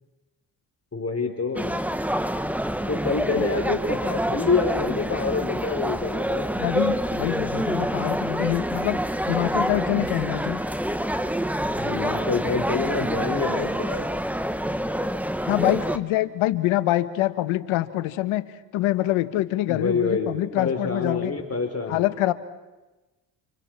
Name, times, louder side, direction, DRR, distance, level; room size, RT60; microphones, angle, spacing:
voice 1, 0.9-1.7 2.9-6.4 11.7-14.1 19.7-22.0, left 4 dB, 30° left, 4 dB, 3.4 m, -27 dB
sound 1, 1.5-16.0, equal, 5° right, 1.3 m, -27 dB
voice 2, 6.6-9.0 9.2-10.6 15.5-18.5 18.7-21.3 21.9-22.3, left 15 dB, 80° left, 13 dB, 1.2 m, -25 dB
30.0 x 26.0 x 4.4 m, 1.1 s
supercardioid pair, 60°, 49 cm